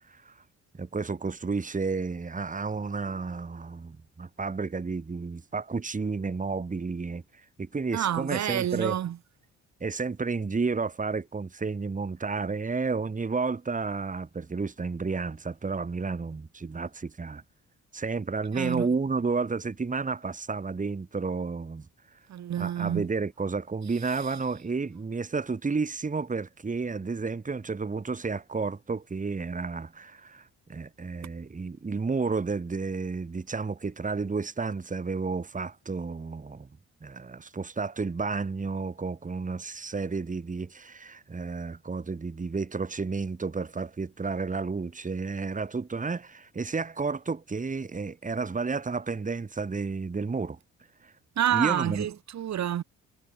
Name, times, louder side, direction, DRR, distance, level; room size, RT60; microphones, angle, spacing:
voice 1, 0.8-7.2 7.6-9.0 9.8-17.4 17.9-21.9 22.6-36.7 37.0-50.6 51.0-51.1 51.5-52.1, right 4 dB, 25° right, 2.8 m, -31 dB
voice 2, 7.9-9.2 18.5-18.9 22.3-23.1 51.4-52.8, right 10 dB, 65° right, 2.9 m, -28 dB
cardioid pair, 90°, 30 cm